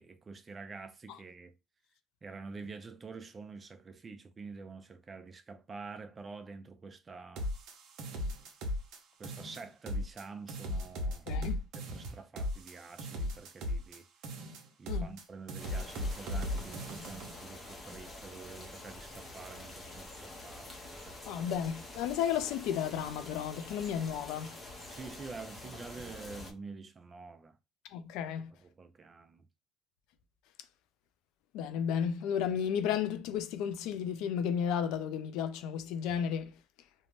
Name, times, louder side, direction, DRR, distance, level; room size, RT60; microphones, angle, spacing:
voice 1, 0.0-1.5 2.2-7.5 9.2-11.3 11.8-14.0 14.8-21.5 24.9-27.6 28.6-29.5, right 4 dB, 20° right, 0.3 m, -47 dB
sound 1, 7.4-9.0 9.2-10.2 10.5-14.0 14.2-15.2 15.5-17.4, left 1 dB, 60° right, 0.7 m, -37 dB
voice 2, 11.3-11.6 14.9-15.1 21.3-24.6 27.9-28.5 31.5-36.5, left 8 dB, 75° left, 0.3 m, -33 dB
sound 2, 15.6-26.5, left 2 dB, 15° left, 0.7 m, -47 dB
2.6 x 2.1 x 3.1 m
cardioid pair, 165°, 0 cm